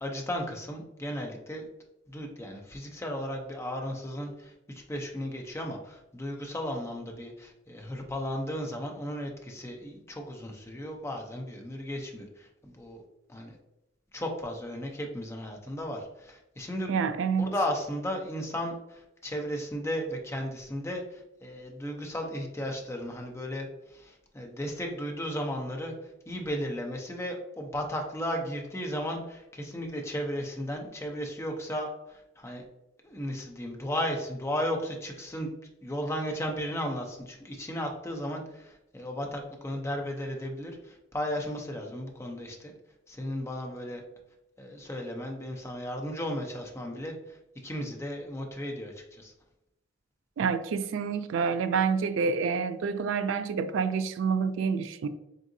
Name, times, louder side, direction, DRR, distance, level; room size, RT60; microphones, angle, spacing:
voice 1, 0.0-1.7 2.1-13.0 13.3-13.6 14.1-17.0 17.4-25.9 26.3-32.7 33.0-35.5 35.8-42.7 43.1-44.0 44.6-47.4 47.6-49.3, equal, 15° left, 2 dB, 0.6 m, -35 dB
voice 2, 16.9-17.5 50.4-55.1, right 5 dB, 85° right, 12 dB, 0.3 m, -28 dB
3.9 x 3.7 x 2.6 m, 0.89 s
head